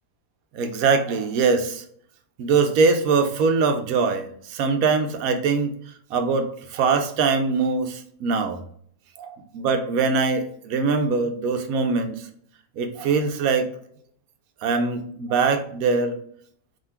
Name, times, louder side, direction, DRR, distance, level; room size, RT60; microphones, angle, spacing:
voice 1, 0.5-1.8 2.4-5.7 6.1-8.6 9.2-12.3 12.8-13.7 14.6-16.2, right 4 dB, 75° right, 7 dB, 1.0 m, -22 dB
3.8 x 2.8 x 4.4 m, 0.63 s
omnidirectional pair, 1.6 m